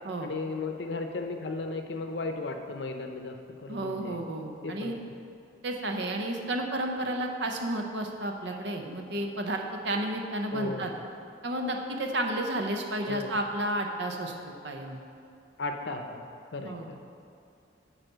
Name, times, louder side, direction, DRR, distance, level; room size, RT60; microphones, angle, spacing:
voice 1, 0.2-4.2 4.6-5.0 10.5-10.9 13.0-13.3 15.6-16.2 16.5-17.0, left 3 dB, 70° left, 5 dB, 0.7 m, -35 dB
voice 2, 3.7-5.0 5.6-10.9 11.4-15.0 16.6-16.9, right 1 dB, 65° right, 3 dB, 0.8 m, -32 dB
9.0 x 4.2 x 6.7 m, 2.5 s
head